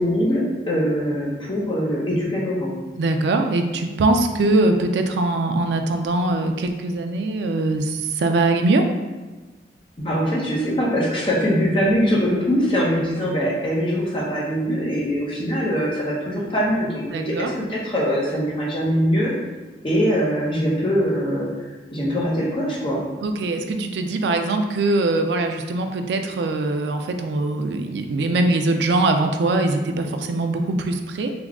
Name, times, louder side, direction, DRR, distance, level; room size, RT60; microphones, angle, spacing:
voice 1, 0.0-2.7 10.0-19.3 19.8-21.5 21.9-23.0, equal, 30° left, -5 dB, 0.7 m, -22 dB
voice 2, 3.0-8.8 17.1-17.5 23.2-31.3, right 2 dB, 75° right, 5 dB, 0.3 m, -22 dB
3.5 x 2.3 x 3.5 m, 1.2 s
head